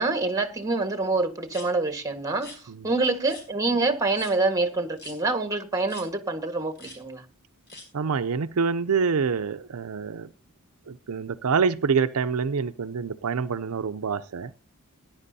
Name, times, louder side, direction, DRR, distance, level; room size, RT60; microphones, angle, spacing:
voice 1, 0.0-2.6 2.8-7.2, right 3 dB, 15° right, 1.5 m, -26 dB
sound 1, 1.5-1.7 2.3-2.6 3.3-3.5 4.1-4.3 5.0-5.2 5.9-6.1 6.7-7.0 7.7-7.9, left 2 dB, 50° left, 5.0 m, -44 dB
voice 2, 7.9-10.3 10.9-14.5, right 5 dB, 75° right, 0.5 m, -26 dB
18.5 x 10.5 x 2.7 m
head